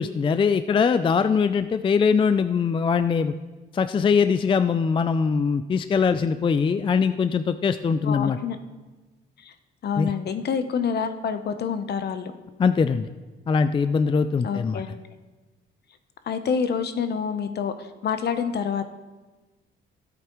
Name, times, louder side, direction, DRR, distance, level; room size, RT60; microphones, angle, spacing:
voice 1, 0.0-3.3 3.7-8.4 10.0-10.1 12.6-13.1 13.5-14.8, left 5 dB, 25° left, 11 dB, 0.3 m, -22 dB
voice 2, 8.0-8.6 9.4-9.5 9.8-12.3 14.4-15.0 16.3-18.8, left 6 dB, 55° left, 9 dB, 0.8 m, -27 dB
13.5 x 8.3 x 3.1 m, 1.2 s
cardioid pair, 90°, 20 cm